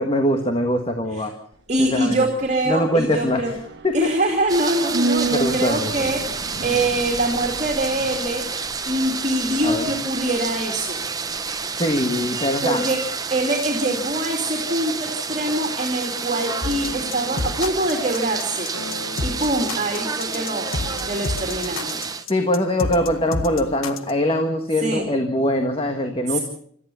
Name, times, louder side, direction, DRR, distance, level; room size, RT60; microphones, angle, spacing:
voice 1, 0.0-1.3 1.8-2.2 2.7-3.5 3.8-4.1 5.3-6.1 9.6-9.9 11.7-12.8 22.3-26.4, left 1 dB, 25° left, 5 dB, 1.6 m, -22 dB
sound 1, 1.5-12.0 12.3-12.4, right 2 dB, 50° right, 1.7 m, -32 dB
voice 2, 1.7-3.5 3.9-8.4 8.9-11.0 12.6-13.0 13.3-18.7 19.2-20.7 21.1-22.0 24.8-25.1 26.3-26.4, right 1 dB, 35° right, 1 dB, 2.7 m, -24 dB
sound 2, 4.5-22.2, right 5 dB, 20° right, 0.9 m, -29 dB
sound 3, 16.6-24.1, left 2 dB, 80° left, 1.8 m, -30 dB
26.5 x 14.0 x 7.0 m, 0.63 s
head